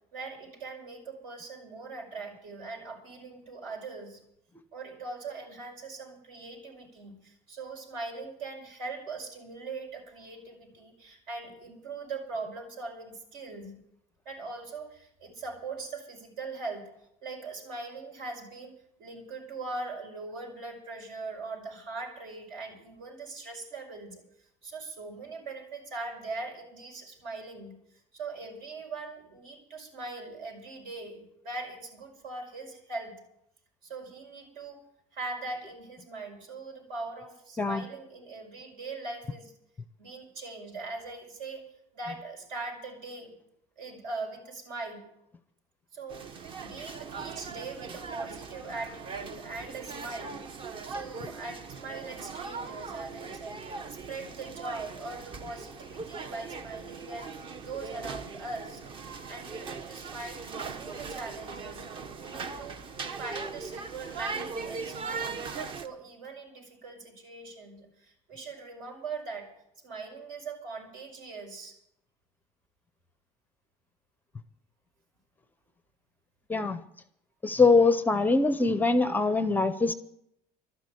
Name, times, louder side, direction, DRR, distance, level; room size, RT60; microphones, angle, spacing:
voice 1, 0.1-4.2 4.7-13.8 14.3-16.9 17.2-24.2 24.6-27.7 28.1-33.2 33.8-39.5 40.0-43.3 43.8-45.0 45.9-50.4 50.8-53.6 53.9-57.3 57.6-58.8 59.3-60.5 60.7-61.9 62.2-62.7 63.2-65.4 65.8-69.5 69.8-71.8, right 3 dB, 75° right, 3 dB, 5.4 m, -41 dB
sound 1, 46.1-65.9, right 4 dB, 35° right, 0.9 m, -40 dB
voice 2, 76.5-76.8 77.4-79.9, left 3 dB, 10° left, 12 dB, 0.5 m, -23 dB
12.5 x 10.5 x 8.3 m, 0.76 s
cardioid pair, 155°, 15 cm